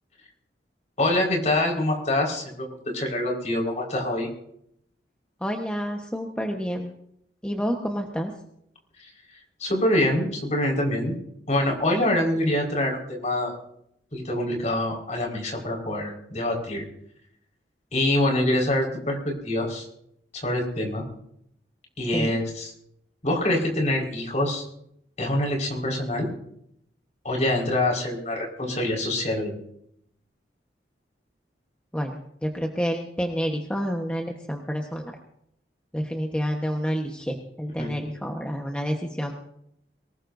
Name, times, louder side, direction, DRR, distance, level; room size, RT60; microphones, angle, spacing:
voice 1, 1.0-4.3 9.0-9.1 9.6-11.2 11.5-13.5 14.1-16.8 17.9-19.9 20.3-21.0 22.0-22.7 23.2-24.6 25.2-26.3 27.2-29.5 37.8-37.9, left 1 dB, 40° left, 1 dB, 4.8 m, -25 dB
voice 2, 5.4-6.9 7.4-8.3 22.1-22.4 31.9-35.2 35.9-39.3, equal, 5° left, 1 dB, 1.2 m, -29 dB
23.5 x 19.5 x 2.7 m, 0.73 s
head